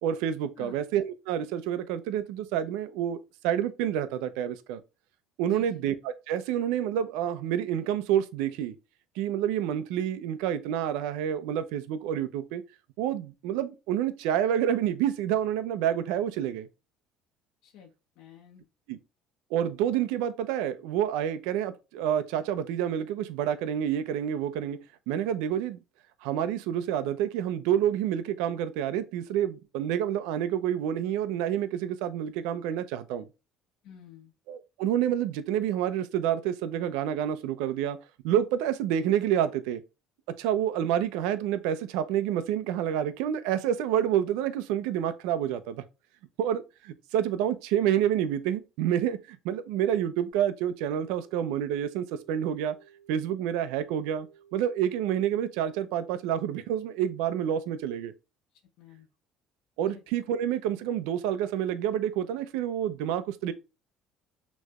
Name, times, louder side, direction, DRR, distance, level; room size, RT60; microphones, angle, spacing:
voice 1, 0.0-4.8 5.4-8.7 9.2-12.6 13.0-16.7 18.9-19.0 19.5-24.8 25.1-25.8 26.2-33.3 34.5-38.0 38.2-39.8 40.4-45.8 46.4-52.8 53.1-58.1 59.8-63.5, right 10 dB, 90° right, 0.7 m, -28 dB
voice 2, 5.5-5.8 17.6-17.9 18.2-18.6 33.8-34.3 58.8-59.1 59.9-60.0, left 10 dB, 70° left, 1.0 m, -49 dB
sound 1, 50.3-56.4, right 8 dB, 20° left, 2.0 m, -58 dB
6.4 x 3.2 x 2.3 m
cardioid pair, 120°, 0 cm